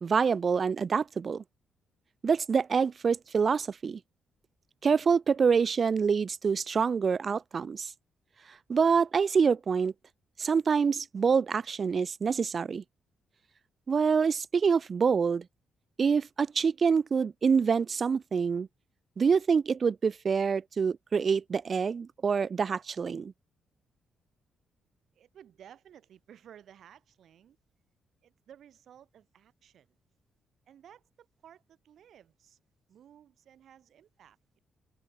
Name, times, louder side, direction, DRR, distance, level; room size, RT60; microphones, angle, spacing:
voice 1, 0.0-1.4 2.2-4.0 4.8-7.9 8.7-9.9 10.4-12.8 13.9-15.5 16.0-18.7 19.2-23.3, right 6 dB, 35° right, 0.3 m, -26 dB
voice 2, 25.1-27.6 28.2-29.9 30.7-32.6 32.9-34.6, right 9 dB, 60° right, 7.5 m, -56 dB
open air
cardioid pair, 150°, 0 cm